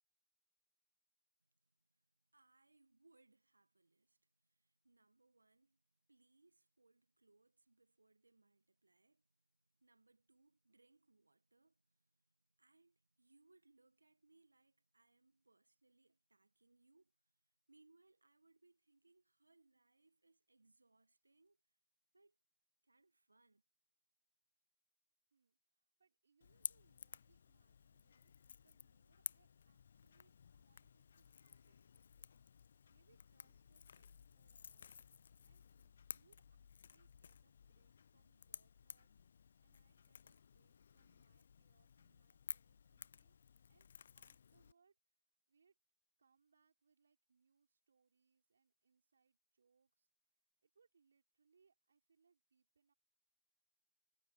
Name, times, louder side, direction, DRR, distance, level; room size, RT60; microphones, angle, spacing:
voice 1, 2.3-9.5 9.7-17.1 17.7-21.6 22.1-22.4 22.8-23.6, right 2 dB, 75° right, 1.2 m, -73 dB
voice 2, 25.3-32.3 32.9-35.0 35.4-43.3 43.7-45.2 45.5-45.8 46.2-50.1 50.6-52.9, right 5 dB, 50° right, 5.4 m, -79 dB
Crackle / Crack, 26.4-44.7, left 7 dB, 45° left, 0.5 m, -55 dB
figure-of-eight pair, 150°, 0 cm